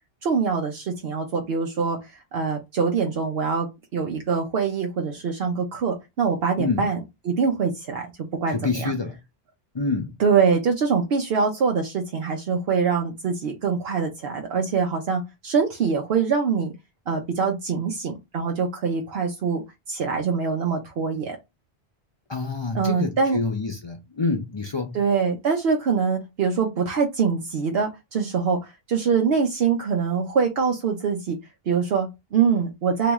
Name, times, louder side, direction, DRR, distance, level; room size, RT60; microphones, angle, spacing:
voice 1, 0.2-8.9 10.2-16.7 17.1-21.4 22.7-23.4 24.9-31.4 31.7-33.1, right 5 dB, 70° right, 0.9 m, -24 dB
voice 2, 8.5-9.2 9.7-10.1 22.3-25.0, left 4 dB, 40° left, 0.4 m, -27 dB
3.0 x 3.0 x 3.4 m
omnidirectional pair, 1.1 m